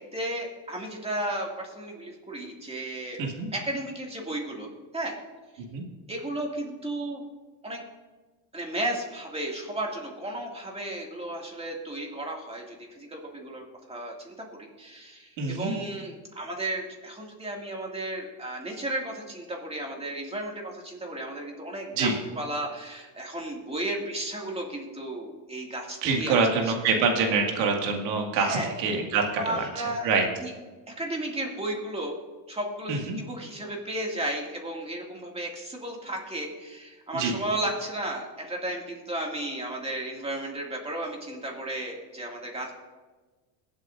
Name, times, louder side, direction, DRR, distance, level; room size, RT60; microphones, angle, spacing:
voice 1, 0.1-3.2 3.5-5.1 5.5-5.6 6.1-7.2 7.6-7.8 8.5-26.4 28.3-28.7 29.4-30.1 30.4-30.5 31.0-32.2 32.5-42.7, right 1 dB, 10° right, 0 dB, 2.3 m, -34 dB
voice 2, 15.4-15.7 21.9-22.1 26.0-30.2 32.9-33.2 37.1-37.3, right 4 dB, 85° right, 2 dB, 2.2 m, -26 dB
22.0 x 7.9 x 2.6 m, 1.3 s
supercardioid pair, 120°, 50 cm